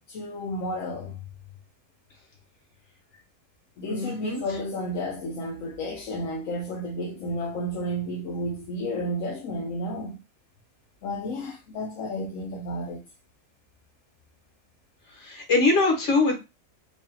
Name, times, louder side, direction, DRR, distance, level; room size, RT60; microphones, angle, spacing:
voice 1, 0.1-1.3 3.8-10.2 11.0-13.0, equal, 60° left, 1.0 m, -32 dB
voice 2, 3.9-4.4 15.2-16.4, left 3 dB, 45° left, 1.6 m, -23 dB
4.7 x 2.4 x 2.8 m
omnidirectional pair, 1.7 m